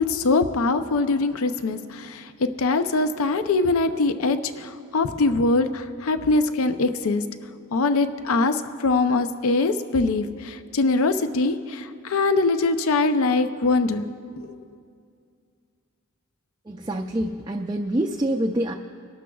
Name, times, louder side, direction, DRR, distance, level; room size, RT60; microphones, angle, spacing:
voice 1, 0.0-7.2 7.7-14.1 14.4-14.6, left 3 dB, 70° left, 9 dB, 0.5 m, -23 dB
voice 2, 16.7-18.7, right 1 dB, 20° right, 2 dB, 0.4 m, -26 dB
26.0 x 12.0 x 2.3 m, 2.3 s
head